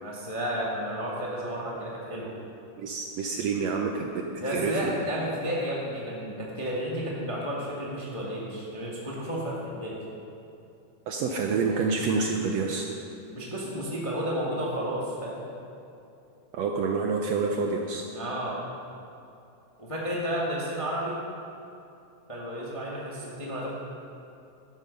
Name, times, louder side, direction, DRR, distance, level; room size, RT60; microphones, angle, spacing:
voice 1, 0.0-2.3 4.4-10.0 13.3-15.4 18.1-18.6 19.8-21.2 22.3-23.7, equal, 20° left, -4 dB, 1.0 m, -32 dB
voice 2, 2.8-4.9 11.1-12.9 16.5-18.1, right 4 dB, 70° right, 2 dB, 1.7 m, -28 dB
12.5 x 11.5 x 5.4 m, 2.7 s
omnidirectional pair, 3.6 m